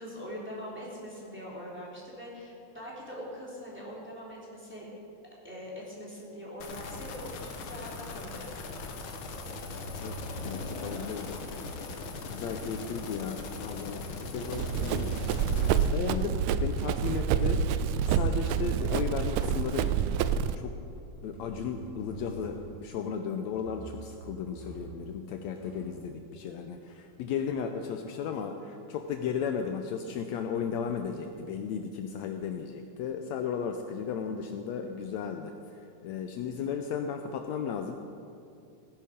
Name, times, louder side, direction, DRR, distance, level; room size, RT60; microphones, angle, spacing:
voice 1, 0.0-4.9 5.4-8.8, equal, 5° right, -6 dB, 3.1 m, -42 dB
sound 1, 6.6-15.9, left 3 dB, 55° left, 1.5 m, -40 dB
sound 2, 9.2-11.5 13.1-15.6 16.1-16.8 17.5-18.6 19.0-20.3 20.9-22.9 23.5-24.2 24.5-25.1 25.4-26.0 26.9-27.0, right 2 dB, 20° left, 1.1 m, -45 dB
voice 2, 10.0-11.4 12.3-15.1 15.5-17.6 18.0-19.9 20.5-20.8 21.2-38.0, left 7 dB, 80° left, 5 dB, 1.8 m, -35 dB
Run, 14.5-20.6, right 8 dB, 80° right, 1.9 m, -28 dB
17.5 x 10.5 x 5.1 m, 2.6 s
omnidirectional pair, 3.5 m